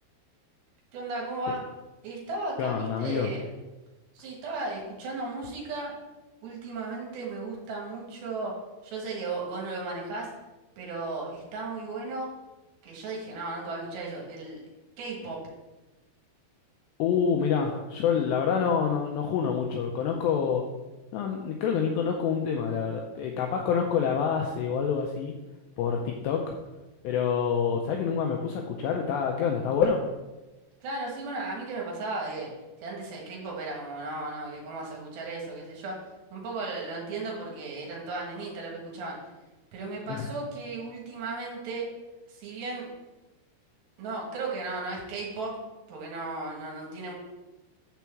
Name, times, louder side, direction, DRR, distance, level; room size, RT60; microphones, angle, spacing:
voice 1, 0.9-1.6 2.0-3.5 4.1-5.9 6.4-8.5 8.8-10.3 10.8-12.3 12.8-14.6 15.0-15.4 30.8-32.5 32.8-36.0 36.3-39.2 39.7-41.9 42.3-42.9 44.0-45.6 45.9-47.1, right 3 dB, 65° right, -2 dB, 3.4 m, -35 dB
voice 2, 2.6-3.3 17.0-20.6 21.1-25.3 25.8-26.5 27.0-30.0 40.1-40.2, left 7 dB, 85° left, 2 dB, 2.4 m, -27 dB
7.2 x 4.5 x 7.0 m, 1.1 s
omnidirectional pair, 5.7 m